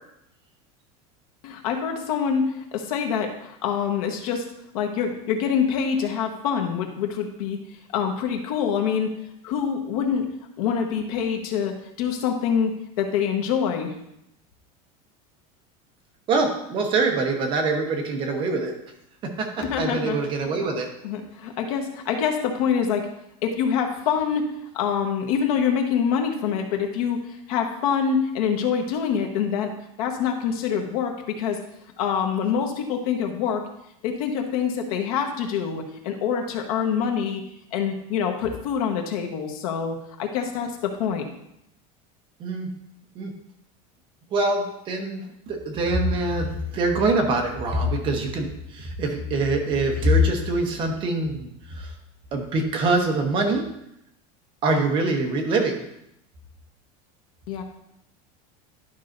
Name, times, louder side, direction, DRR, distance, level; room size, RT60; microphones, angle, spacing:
voice 1, 1.4-4.4 4.7-7.6 7.9-9.1 9.4-10.3 10.6-12.7 13.0-13.9 19.7-20.6 21.0-23.1 23.4-24.5 24.7-29.7 30.0-31.6 32.0-33.6 34.0-37.4 37.7-41.2 57.5-57.6, left 7 dB, 70° left, 3 dB, 1.3 m, -25 dB
voice 2, 16.3-18.7 19.2-20.9 42.4-42.7 43.1-43.3 44.3-51.9 52.3-53.6 54.6-55.7, right 2 dB, 25° right, 2 dB, 1.0 m, -24 dB
11.5 x 5.5 x 2.6 m, 0.79 s
supercardioid pair, 175°, 19 cm